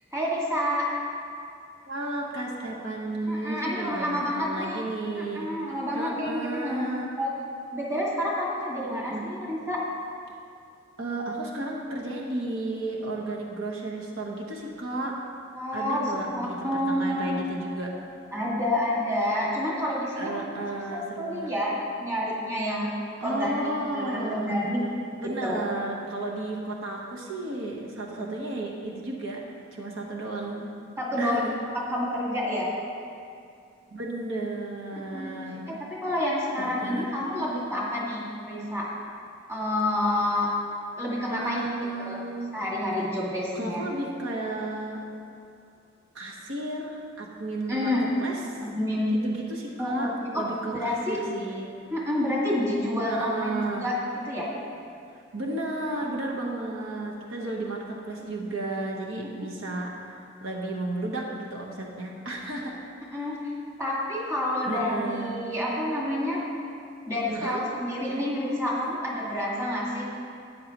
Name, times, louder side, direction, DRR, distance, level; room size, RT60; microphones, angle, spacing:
voice 1, 0.1-0.9 3.3-4.9 5.2-6.9 7.2-7.3 7.7-9.8 15.5-17.4 18.3-20.4 20.9-21.7 22.0-22.9 23.2-24.8 25.2-25.7 31.0-31.4 31.7-32.7 35.1-35.3 35.7-38.9 39.5-40.5 41.0-41.7 42.1-42.2 42.5-43.8 47.7-48.0 48.8-49.1 49.8-50.4 50.7-51.2 51.9-54.0 54.3-54.5 63.1-63.3 63.8-66.4 67.1-70.1, left 1 dB, 15° right, -5 dB, 2.0 m, -28 dB
voice 2, 1.9-5.5 5.9-7.1 8.9-9.2 11.0-15.2 15.7-18.0 20.2-21.5 23.2-24.5 25.2-29.4 29.7-30.7 31.2-31.5 33.9-35.8 36.6-37.4 41.3-42.5 43.5-45.0 46.1-47.9 48.2-48.6 49.1-51.7 53.1-53.9 55.3-62.8 64.7-65.4 67.3-67.6, right 2 dB, 75° right, -2 dB, 1.2 m, -33 dB
13.0 x 9.2 x 3.0 m, 2.5 s
head